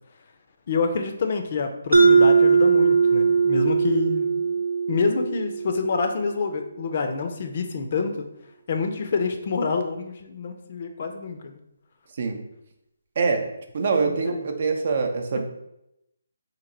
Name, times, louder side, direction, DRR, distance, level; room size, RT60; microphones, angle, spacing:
voice 1, 0.7-4.4 4.9-8.3 8.7-11.6 14.0-14.4, left 4 dB, 45° left, 6 dB, 0.5 m, -27 dB
Mallet percussion, 1.9-6.5, right 5 dB, 85° right, 0.8 m, -20 dB
voice 2, 13.2-13.5 13.7-15.4, right 4 dB, 50° right, 4 dB, 0.6 m, -24 dB
2.9 x 2.8 x 3.8 m, 0.84 s
figure-of-eight pair, 150°, 0 cm